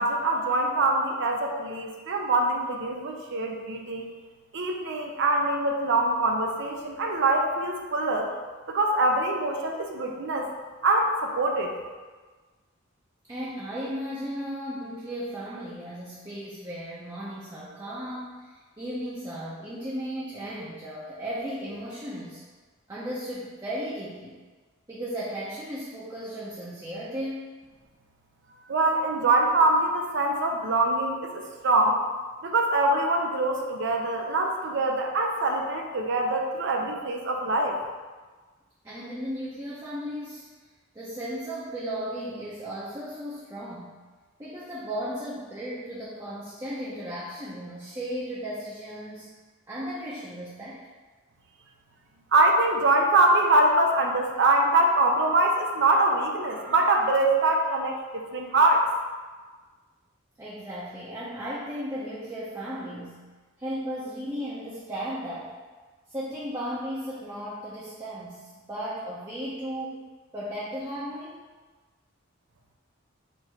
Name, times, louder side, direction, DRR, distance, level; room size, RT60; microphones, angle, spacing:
voice 1, 0.0-4.1 4.5-8.3 8.7-10.5 10.8-11.8 28.7-32.0 32.4-37.8 52.3-58.9, right 2 dB, 60° right, 2 dB, 0.5 m, -24 dB
voice 2, 13.3-22.4 22.9-24.4 24.9-27.6 38.8-40.5 40.9-44.0 44.4-49.3 49.7-50.8 60.4-63.2 63.6-65.6 66.1-71.4, equal, 15° right, -8 dB, 0.6 m, -35 dB
4.5 x 2.6 x 4.5 m, 1.4 s
head